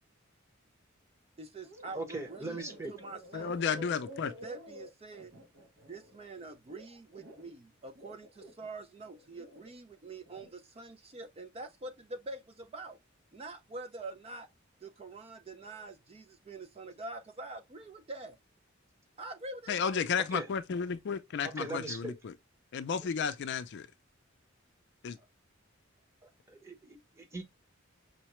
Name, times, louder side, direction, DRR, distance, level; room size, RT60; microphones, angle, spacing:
voice 1, 1.4-3.9 4.2-5.3 5.9-13.0 13.3-14.5 14.8-18.4 19.2-20.1, right 2 dB, 30° right, 0.4 m, -45 dB
sound 1, 1.6-1.9 2.2-7.5 7.9-9.7 10.1-10.5, equal, 60° right, 0.7 m, -51 dB
voice 2, 1.9-2.9 20.3-20.5 21.4-22.1 26.2-27.4, right 2 dB, 15° right, 0.8 m, -40 dB
voice 3, 3.3-4.3 19.7-22.3 22.7-23.9 25.0-25.2, left 6 dB, 60° left, 0.4 m, -33 dB
5.6 x 2.1 x 2.9 m
head